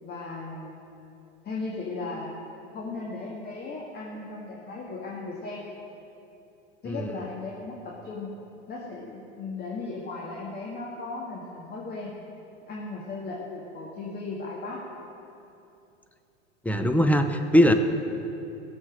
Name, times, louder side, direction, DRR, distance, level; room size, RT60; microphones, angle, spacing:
voice 1, 0.0-0.8 1.4-2.3 2.7-5.6 6.8-8.3 8.7-12.1 12.7-14.8, left 3 dB, 25° left, -3 dB, 1.8 m, -36 dB
voice 2, 6.9-7.2 16.6-17.7, equal, 5° left, 6 dB, 0.7 m, -21 dB
15.5 x 7.3 x 6.5 m, 2.8 s
hypercardioid pair, 100°, 35 cm